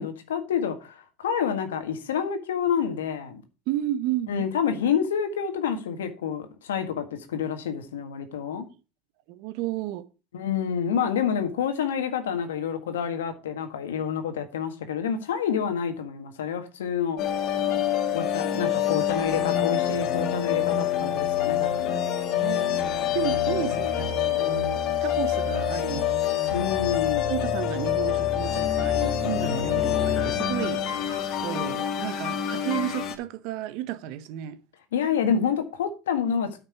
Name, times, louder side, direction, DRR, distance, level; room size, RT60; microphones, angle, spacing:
voice 1, 0.0-3.4 4.3-8.7 10.3-17.2 18.1-21.9 23.6-23.9 26.5-27.3 34.9-36.6, left 7 dB, 90° left, 1.6 m, -28 dB
voice 2, 3.7-4.5 9.3-10.1 22.4-26.1 27.3-30.8 31.4-34.6, right 13 dB, 65° right, 0.9 m, -32 dB
sound 1, 17.2-33.1, left 10 dB, 55° left, 1.7 m, -26 dB
9.4 x 5.9 x 5.9 m
hypercardioid pair, 95°, 0 cm